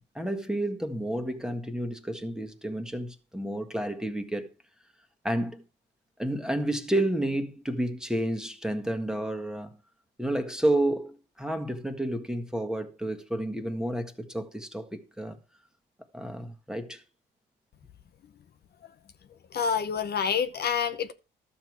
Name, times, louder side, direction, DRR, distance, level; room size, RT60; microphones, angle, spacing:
voice 1, 0.0-4.5 5.2-5.6 6.2-9.8 10.2-15.4 16.1-17.0, right 1 dB, 5° right, 1.6 m, -30 dB
voice 2, 19.5-21.1, left 7 dB, 55° left, 0.9 m, -27 dB
12.5 x 7.1 x 4.7 m
cardioid pair, 90°, 20 cm